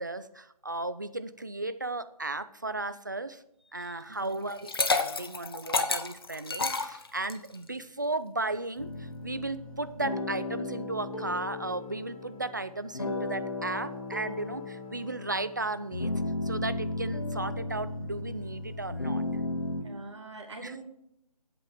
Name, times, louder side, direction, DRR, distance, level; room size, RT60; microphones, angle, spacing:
voice 1, 0.0-3.4 3.7-16.1 16.4-19.2 20.6-20.8, right 2 dB, 30° right, 12 dB, 0.4 m, -35 dB
voice 2, 3.8-4.4 19.8-20.8, right 3 dB, 45° right, 2 dB, 1.5 m, -44 dB
Liquid, 4.5-7.5, left 3 dB, 40° left, 0.7 m, -29 dB
sound 1, 8.8-19.8, left 2 dB, 60° left, 2.2 m, -35 dB
8.3 x 7.5 x 4.9 m, 0.78 s
figure-of-eight pair, 155°, 20 cm